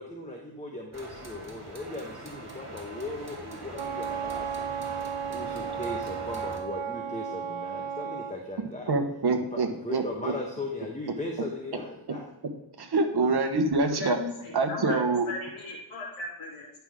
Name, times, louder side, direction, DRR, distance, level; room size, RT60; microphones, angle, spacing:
voice 1, 0.0-4.7 5.3-8.9 9.4-12.3, left 2 dB, 15° left, 1 dB, 1.2 m, -38 dB
sound 1, 0.9-6.6, right 2 dB, 35° right, 2.3 m, -42 dB
Wind instrument woodwind instrument, 3.7-8.3, right 8 dB, 80° right, 0.8 m, -34 dB
voice 2, 8.9-10.3 12.8-14.2 14.5-15.3, right 3 dB, 50° right, 5 dB, 1.3 m, -25 dB
voice 3, 14.0-15.0 15.3-16.8, left 2 dB, 90° left, -5 dB, 3.1 m, -37 dB
10.5 x 5.7 x 3.6 m, 0.92 s
wide cardioid pair, 85°, 48 cm